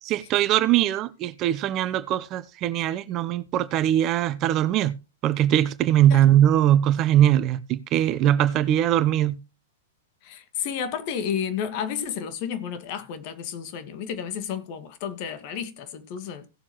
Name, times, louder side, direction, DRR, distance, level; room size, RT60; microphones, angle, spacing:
voice 1, 0.0-5.0 5.2-9.4, right 12 dB, 35° right, 0.9 m, -21 dB
voice 2, 10.2-16.5, left 8 dB, 45° left, 2.0 m, -32 dB
17.5 x 7.3 x 3.1 m
figure-of-eight pair, 105°, 0 cm